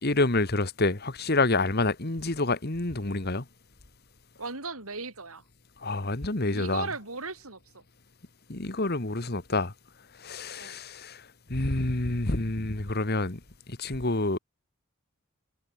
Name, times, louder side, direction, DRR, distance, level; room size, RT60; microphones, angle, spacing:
voice 1, 0.0-3.4 5.8-6.9 8.5-9.7 10.2-13.4 13.7-14.4, left 2 dB, 45° left, 1.8 m, -28 dB
voice 2, 4.4-5.4 6.5-7.8 10.6-10.8, right 3 dB, 75° right, 6.8 m, -37 dB
head